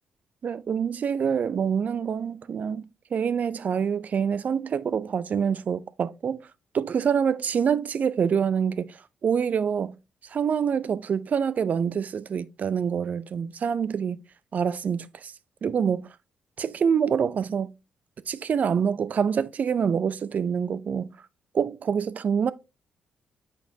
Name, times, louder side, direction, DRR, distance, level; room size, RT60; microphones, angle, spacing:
voice 1, 0.4-6.4 6.7-9.0 9.2-10.0 10.3-14.2 14.5-15.3 15.6-16.1 16.6-17.7 18.3-21.1 21.5-22.5, right 7 dB, 55° right, 0.5 m, -26 dB
8.2 x 4.2 x 2.7 m
hypercardioid pair, 50°, 3 cm